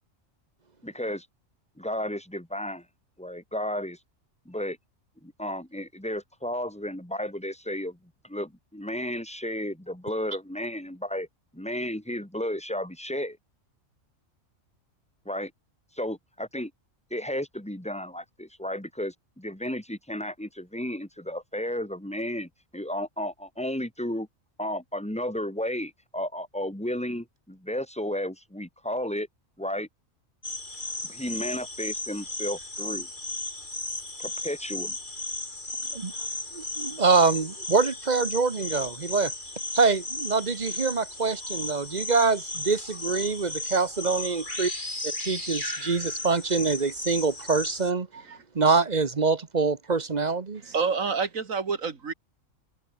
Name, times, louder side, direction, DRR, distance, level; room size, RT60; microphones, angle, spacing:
voice 1, 0.8-1.3 1.8-2.9 3.2-4.0 4.5-4.8 5.2-8.0 8.2-11.3 11.5-13.4 15.3-15.5 15.9-16.7 17.1-24.3 24.6-29.3 29.6-29.9 31.0-33.1 34.2-35.0, left 1 dB, 5° left, 2.6 m, -33 dB
sound 1, 30.4-47.9, left 2 dB, 35° left, 4.0 m, -35 dB
voice 2, 36.5-39.3 39.7-44.7 45.2-48.1 48.5-50.7, right 4 dB, 35° right, 1.2 m, -25 dB
voice 3, 50.6-52.1, right 5 dB, 85° right, 2.4 m, -28 dB
omnidirectional pair, 1.4 m